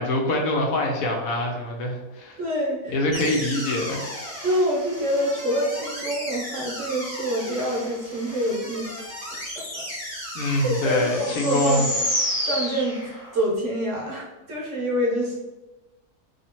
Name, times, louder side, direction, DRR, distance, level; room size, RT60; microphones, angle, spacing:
voice 1, 0.0-2.4 2.9-4.0 10.3-11.8, left 1 dB, 75° left, 1 dB, 1.0 m, -24 dB
voice 2, 2.4-3.0 4.4-9.1 9.5-9.8 10.6-11.9 12.2-12.9 13.3-15.4, equal, 60° right, -3 dB, 1.0 m, -26 dB
sound 1, 3.1-13.4, left 1 dB, 25° left, 1.3 m, -32 dB
2.7 x 2.7 x 2.9 m, 1.1 s
omnidirectional pair, 1.6 m